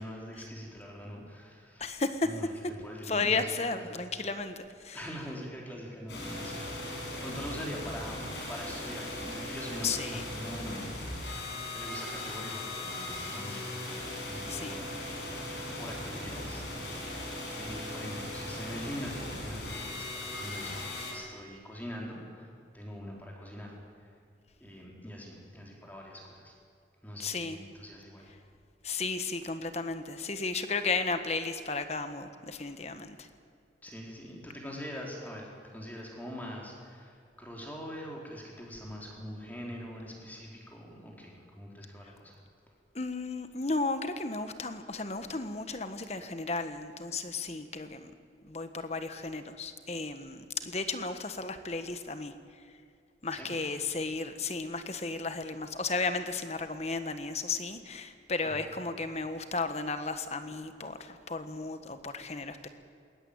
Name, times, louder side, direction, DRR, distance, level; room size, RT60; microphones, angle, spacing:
voice 1, 0.0-2.0 2.2-2.5 2.8-3.8 4.9-10.8 11.2-13.8 14.2-15.3 15.8-16.6 17.6-23.8 24.6-26.5 27.0-28.2 33.8-42.4 53.3-53.5 58.4-58.6, equal, 10° left, -2 dB, 4.4 m, -43 dB
voice 2, 1.8-2.3 3.0-5.0 9.8-10.2 14.5-14.8 27.2-27.6 28.8-33.3 42.9-48.1 48.4-52.6 53.2-62.7, left 3 dB, 35° left, 9 dB, 1.4 m, -34 dB
sound 1, 6.1-21.1, left 1 dB, 75° left, 6.3 m, -38 dB
21.0 x 19.0 x 8.9 m, 2.3 s
head